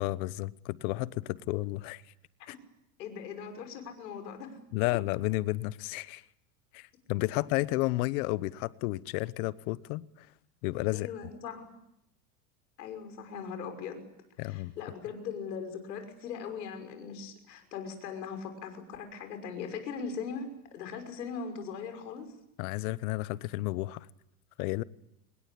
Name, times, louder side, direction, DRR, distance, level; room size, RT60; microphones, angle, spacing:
voice 1, 0.0-2.0 2.5-2.6 4.7-6.2 6.7-10.3 10.6-11.1 14.4-14.7 22.6-24.1 24.6-24.8, left 19 dB, 65° left, 1.1 m, -32 dB
voice 2, 3.0-4.6 10.9-11.7 12.8-14.0 14.4-22.3, left 6 dB, 85° left, 5.9 m, -40 dB
26.0 x 21.5 x 8.5 m
supercardioid pair, 110°, 48 cm